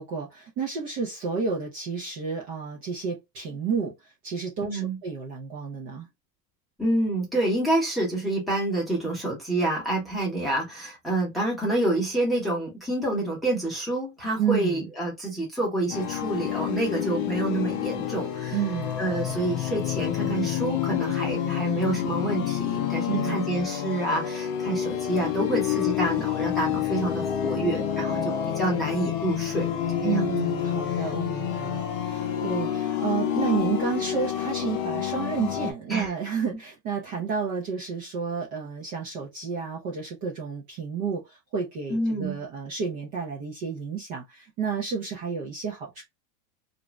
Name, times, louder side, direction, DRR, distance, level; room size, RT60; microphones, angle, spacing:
voice 1, 0.0-3.9 4.2-6.1 14.4-14.9 18.5-19.4 23.1-23.4 30.0-46.0, right 6 dB, 35° right, 0.6 m, -31 dB
voice 2, 4.6-5.0 6.8-18.6 19.0-29.7 30.0-30.3 30.9-31.0 35.9-36.1 41.9-42.4, right 1 dB, ahead, 0.9 m, -28 dB
sound 1, 15.9-35.7, left 10 dB, 40° left, 0.5 m, -28 dB
2.6 x 2.2 x 3.0 m
supercardioid pair, 165°, 43 cm